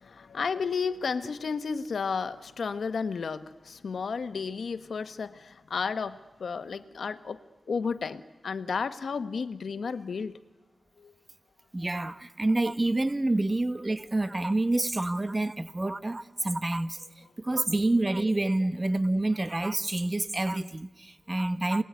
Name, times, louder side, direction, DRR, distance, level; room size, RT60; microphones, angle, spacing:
voice 1, 0.0-7.4 7.7-10.3 11.0-11.1, left 5 dB, 80° left, 1.2 m, -32 dB
voice 2, 11.7-17.0 17.4-21.8, right 2 dB, 25° right, 1.1 m, -28 dB
27.5 x 20.0 x 9.5 m
wide cardioid pair, 100°, 0 cm